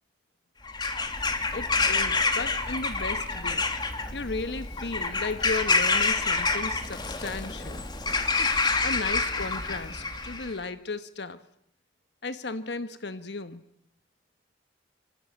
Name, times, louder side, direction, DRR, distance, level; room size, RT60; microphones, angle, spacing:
Bird vocalization bird call bird song / Crow, 0.7-10.5, left 3 dB, 25° left, 2.6 m, -27 dB
voice 1, 1.5-3.7 4.1-7.8 8.4-11.4 12.2-13.6, left 3 dB, 75° left, 11 dB, 1.3 m, -35 dB
27.0 x 25.5 x 8.8 m, 0.73 s
head